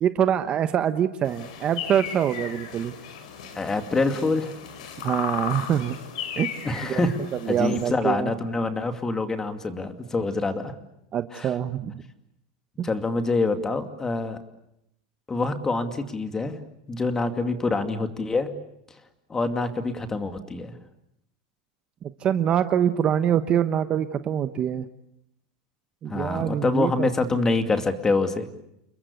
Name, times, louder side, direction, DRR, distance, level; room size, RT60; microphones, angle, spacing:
voice 1, 0.0-2.9 5.0-5.9 6.4-6.5 6.9-7.1 7.4-8.3 11.1-12.0 12.8-12.9 22.2-24.9 26.0-27.1, right 9 dB, 25° right, 10 dB, 1.0 m, -24 dB
sound 1, 1.2-7.9, left 8 dB, 75° left, 6.3 m, -36 dB
voice 2, 3.5-4.5 6.6-7.1 7.5-10.7 11.3-11.5 12.8-14.4 15.3-16.6 16.9-18.5 19.3-20.7 26.1-28.5, left 3 dB, 15° left, 8 dB, 2.4 m, -26 dB
30.0 x 21.5 x 8.3 m, 0.79 s
supercardioid pair, 150°, 4 cm